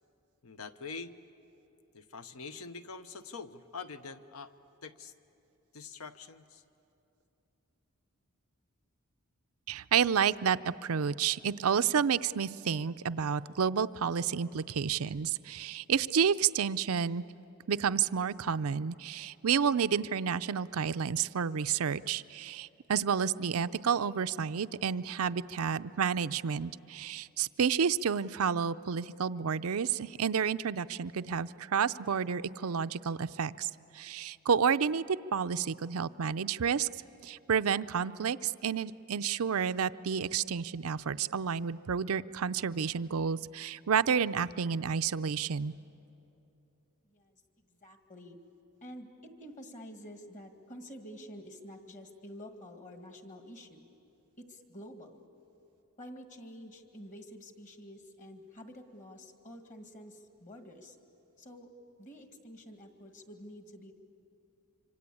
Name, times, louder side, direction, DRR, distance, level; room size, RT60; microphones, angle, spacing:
voice 1, 0.4-1.1 1.9-4.5 4.8-5.1 5.7-6.6, left 4 dB, 70° left, 10 dB, 0.9 m, -44 dB
voice 2, 9.7-17.2 17.7-36.9 37.2-45.7, right 7 dB, 70° right, 14 dB, 0.5 m, -30 dB
voice 3, 47.0-47.4 47.7-48.4 48.8-53.9 54.4-55.2 56.0-61.0 61.4-61.7 62.0-63.9, equal, 35° left, 5 dB, 2.0 m, -49 dB
26.0 x 25.5 x 8.5 m, 2.8 s
head